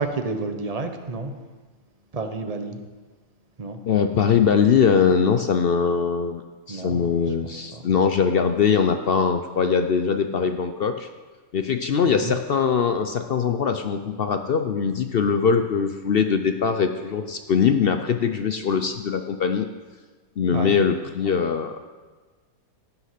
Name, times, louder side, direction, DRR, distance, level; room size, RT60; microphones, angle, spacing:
voice 1, 0.0-1.3 2.1-2.8 3.6-3.8 6.7-7.3 7.7-7.9 12.1-12.4 20.5-20.7, right 3 dB, 30° right, 6 dB, 0.8 m, -30 dB
voice 2, 3.9-6.4 6.7-11.1 11.5-19.7 20.4-21.8, left 6 dB, 60° left, 7 dB, 0.6 m, -22 dB
16.5 x 5.9 x 5.8 m, 1.3 s
omnidirectional pair, 1.5 m